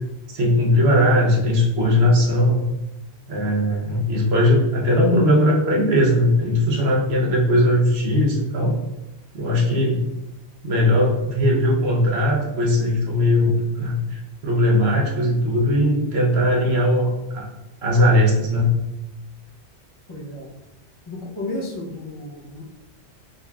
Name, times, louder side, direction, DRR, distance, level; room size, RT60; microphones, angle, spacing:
voice 1, 0.3-2.7 3.3-8.7 9.3-10.0 10.6-17.5 17.8-18.7, left 1 dB, 70° right, -1 dB, 1.0 m, -19 dB
voice 2, 20.1-20.5 21.1-22.6, left 2 dB, 30° left, -3 dB, 0.6 m, -32 dB
3.9 x 3.4 x 2.2 m, 1.0 s
omnidirectional pair, 1.1 m